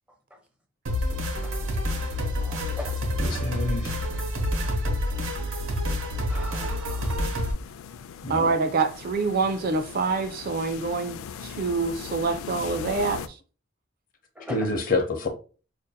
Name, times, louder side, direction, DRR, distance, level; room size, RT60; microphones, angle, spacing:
sound 1, 0.9-7.5, left 1 dB, 75° right, 0.9 m, -28 dB
voice 1, 2.4-3.5 6.3-7.4 14.4-14.7, left 1 dB, 5° right, 0.7 m, -41 dB
voice 2, 3.2-4.0 8.2-8.5 14.5-15.3, left 2 dB, 45° left, 0.6 m, -27 dB
sound 2, 7.0-13.3, left 7 dB, 85° left, 0.3 m, -39 dB
voice 3, 8.3-13.4, right 4 dB, 45° right, 0.3 m, -26 dB
5.3 x 2.6 x 2.2 m
head